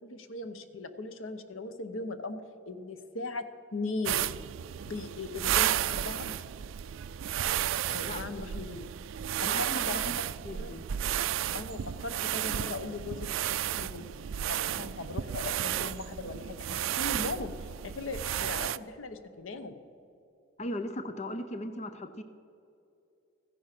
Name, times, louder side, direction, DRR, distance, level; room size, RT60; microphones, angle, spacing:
voice 1, 0.0-2.4 2.7-4.3 4.9-6.3 7.9-8.9 9.4-10.7 11.5-14.1 14.5-17.5 17.8-19.8, left 3 dB, 85° left, 10 dB, 1.0 m, -39 dB
sound 1, 4.1-18.8, right 11 dB, 80° right, 0.4 m, -33 dB
voice 2, 9.5-10.2 10.4-10.9 20.6-22.2, left 1 dB, 35° left, 9 dB, 0.6 m, -38 dB
15.0 x 10.0 x 5.9 m, 2.7 s
head